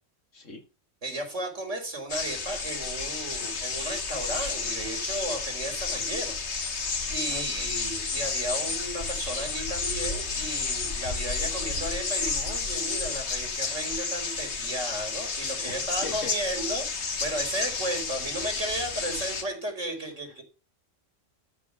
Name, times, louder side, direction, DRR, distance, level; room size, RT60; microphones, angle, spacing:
voice 1, 1.0-6.4 7.1-20.4, right 1 dB, 75° right, 3 dB, 4.4 m, -34 dB
sound 1, 2.1-19.4, left 4 dB, 60° left, 1.8 m, -31 dB
voice 2, 7.3-7.7 15.6-16.3, left 3 dB, 80° left, 4 dB, 2.6 m, -40 dB
13.0 x 4.9 x 7.1 m, 0.33 s
omnidirectional pair, 1.3 m